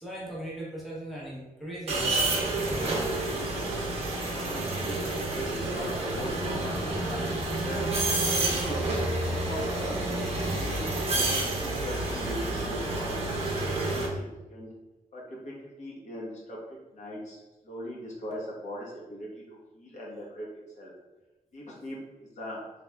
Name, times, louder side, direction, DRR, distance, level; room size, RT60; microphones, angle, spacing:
voice 1, 0.0-3.0, right 1 dB, ahead, -6 dB, 0.8 m, -39 dB
sound 1, 1.9-14.1, right 2 dB, 45° right, 0.8 m, -29 dB
voice 2, 4.4-7.8 8.4-11.3 11.6-13.1 13.6-14.7 15.1-20.5 20.8-20.9 21.5-22.6, equal, 55° left, -5 dB, 1.1 m, -40 dB
3.4 x 3.3 x 2.2 m, 1.1 s
wide cardioid pair, 135°, 14 cm